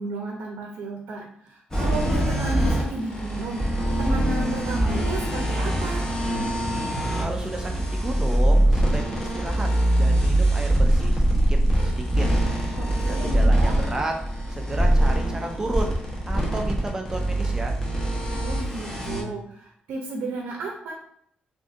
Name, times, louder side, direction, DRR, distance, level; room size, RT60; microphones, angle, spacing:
voice 1, 0.0-6.1 12.8-13.8 18.3-20.9, right 2 dB, 75° right, 1 dB, 0.6 m, -33 dB
sound 1, 1.7-19.2, right 1 dB, 15° left, 0.9 m, -23 dB
voice 2, 7.2-9.7 10.0-11.2 11.5-12.3 12.9-14.2 14.5-16.0 16.3-17.8, right 2 dB, 20° right, 2 dB, 0.4 m, -32 dB
3.7 x 2.6 x 2.5 m, 0.67 s
cardioid pair, 115°, 3 cm